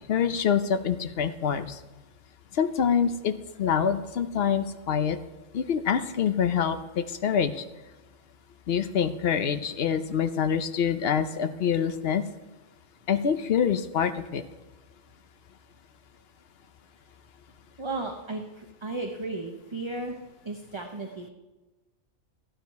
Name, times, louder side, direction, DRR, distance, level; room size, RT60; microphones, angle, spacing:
voice 1, 0.1-1.8 2.5-5.2 5.5-7.7 8.7-12.2 13.1-14.4, left 7 dB, 55° left, 10 dB, 0.8 m, -26 dB
voice 2, 17.8-20.2 20.4-21.3, right 2 dB, 25° right, 3 dB, 0.8 m, -34 dB
15.0 x 9.1 x 4.6 m, 1.1 s
omnidirectional pair, 1.5 m